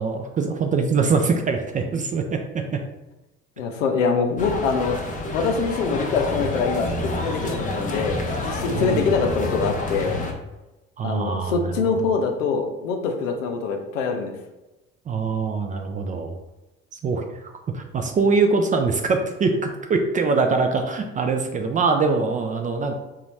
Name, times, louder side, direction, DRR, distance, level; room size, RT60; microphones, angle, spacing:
voice 1, 0.0-2.4 2.7-2.8 8.7-9.1 11.0-11.8 15.1-16.4 16.9-23.0, right 4 dB, 20° right, 4 dB, 0.3 m, -23 dB
voice 2, 3.6-5.0 5.3-10.1 11.0-14.3, left 5 dB, 75° left, 5 dB, 0.6 m, -24 dB
sound 1, 4.4-10.3, left 2 dB, 20° left, 0.7 m, -28 dB
3.9 x 2.4 x 3.1 m, 1.0 s
figure-of-eight pair, 55°, 38 cm